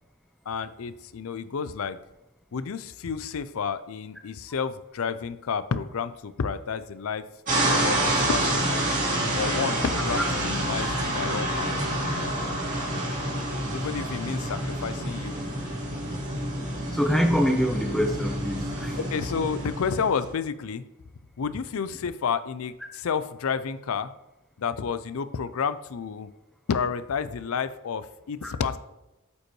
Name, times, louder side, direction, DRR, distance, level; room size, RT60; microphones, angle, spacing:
voice 1, 0.5-2.0 2.5-7.2 7.8-9.0 9.4-11.8 13.7-15.4 19.1-20.8 21.4-24.1 24.6-26.3 26.7-28.8, left 6 dB, 75° left, 13 dB, 0.5 m, -30 dB
sound 1, 7.5-20.3, right 1 dB, 35° right, 2.2 m, -28 dB
voice 2, 16.9-19.0 28.4-28.5, equal, ahead, 2 dB, 0.5 m, -25 dB
8.1 x 5.2 x 3.1 m, 0.96 s
head